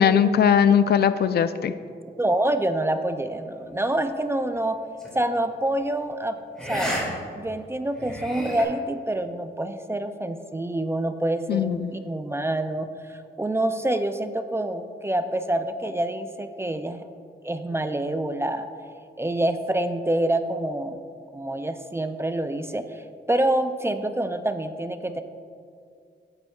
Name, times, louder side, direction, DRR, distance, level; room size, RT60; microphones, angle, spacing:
voice 1, 0.0-1.7 11.5-11.9, left 8 dB, 60° left, 12 dB, 0.4 m, -19 dB
voice 2, 2.2-4.8 5.1-7.0 7.3-17.1 17.4-18.7 19.2-21.0 21.3-23.0 23.3-25.2, right 1 dB, 15° right, 8 dB, 0.3 m, -27 dB
sound 1, 5.0-5.2 6.6-7.0 7.4-7.5 8.0-8.6, equal, 5° left, 2.4 m, -30 dB
13.5 x 9.6 x 2.3 m, 2.3 s
wide cardioid pair, 165°, 19 cm